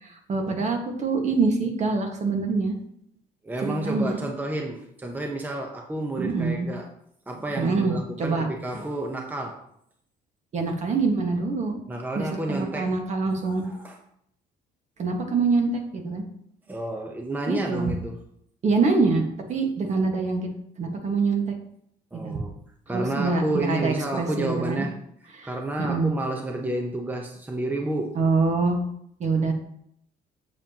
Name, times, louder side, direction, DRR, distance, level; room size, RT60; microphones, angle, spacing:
voice 1, 0.0-2.7 3.6-4.2 6.2-6.7 7.6-8.5 10.5-11.8 12.1-13.6 15.0-16.2 17.5-17.9 18.6-20.5 20.8-21.5 22.2-22.3 22.9-24.8 25.3-25.5 25.8-26.1 28.1-28.8 29.2-29.5, right 4 dB, 45° right, 3 dB, 1.6 m, -25 dB
voice 2, 3.4-6.9 7.3-9.6 11.9-12.9 13.4-14.0 16.7-18.2 22.1-22.6 22.9-25.0 25.4-28.2, right 1 dB, 10° right, 1 dB, 0.9 m, -30 dB
8.2 x 6.9 x 2.9 m, 0.71 s
cardioid pair, 110°, 17 cm